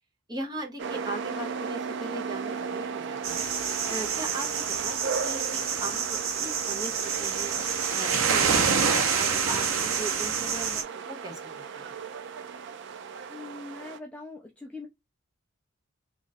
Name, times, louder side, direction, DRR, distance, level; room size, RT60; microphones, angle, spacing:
voice 1, 0.3-3.5 3.9-7.5 7.9-11.9, right 2 dB, 20° right, 1.0 m, -39 dB
sound 1, 0.8-14.0, right 5 dB, 55° right, 0.4 m, -36 dB
sound 2, 3.2-10.8, right 6 dB, 75° right, 0.8 m, -27 dB
voice 2, 13.3-14.9, left 3 dB, 5° left, 0.5 m, -42 dB
3.0 x 2.5 x 4.0 m
head